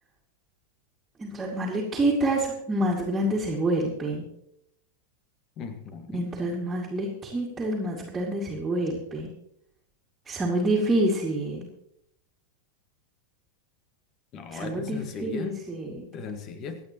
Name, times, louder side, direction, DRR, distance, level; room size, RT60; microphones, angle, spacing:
voice 1, 1.2-4.2 6.1-9.3 10.3-11.7 14.5-16.1, right 1 dB, 15° right, -5 dB, 2.4 m, -27 dB
voice 2, 5.6-6.3 14.3-15.6 16.1-16.8, left 5 dB, 35° left, 9 dB, 1.7 m, -37 dB
26.0 x 8.8 x 3.1 m, 0.77 s
figure-of-eight pair, 90°, 0 cm